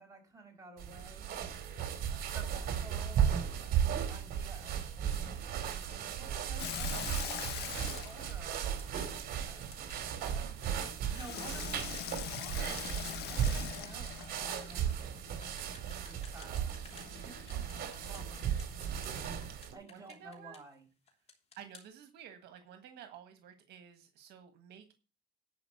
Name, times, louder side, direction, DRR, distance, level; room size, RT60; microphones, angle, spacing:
voice 1, 0.0-1.4 2.3-3.6 4.1-8.7 9.0-17.7 18.0-18.7 19.7-20.9, right 2 dB, 20° right, 1 dB, 5.2 m, -54 dB
sound 1, 0.8-19.7, right 9 dB, 65° right, 2.3 m, -36 dB
Water tap faucet / Sink (filling or washing), 6.6-9.6 11.1-14.8 16.9-19.4, left 11 dB, 75° left, 1.2 m, -43 dB
sound 2, 7.8-8.1 8.8-9.1 9.7-10.0 10.6-17.1 17.5-19.1 19.4-20.8 21.1-21.9, left 4 dB, 40° left, 3.2 m, -57 dB
voice 2, 19.9-20.6 21.6-24.9, right 9 dB, 80° right, 8 dB, 1.5 m, -52 dB
11.5 x 4.9 x 8.0 m, 0.33 s
cardioid pair, 110°, 17 cm